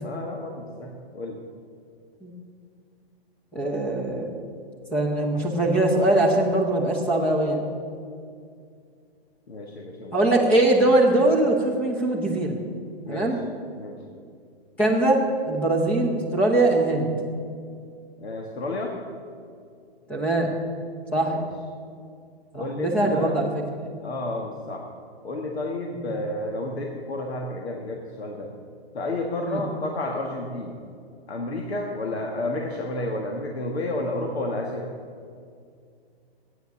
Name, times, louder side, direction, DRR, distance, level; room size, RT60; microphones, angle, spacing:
voice 1, 0.0-1.4 9.5-10.2 13.0-13.4 13.8-14.0 18.2-19.0 21.2-21.5 22.6-23.3 24.0-24.9 25.2-28.5 28.9-30.8 31.3-34.9, left 2 dB, 80° left, 1 dB, 1.7 m, -31 dB
voice 2, 3.5-4.3 4.9-7.7 10.1-12.6 13.1-13.4 14.8-17.1 20.1-20.5 21.1-21.4 22.5-23.5 23.8-23.9 26.0-26.1 29.4-29.6, right 2 dB, 5° left, -1 dB, 0.8 m, -22 dB
13.5 x 9.5 x 7.0 m, 2.3 s
hypercardioid pair, 175°, 31 cm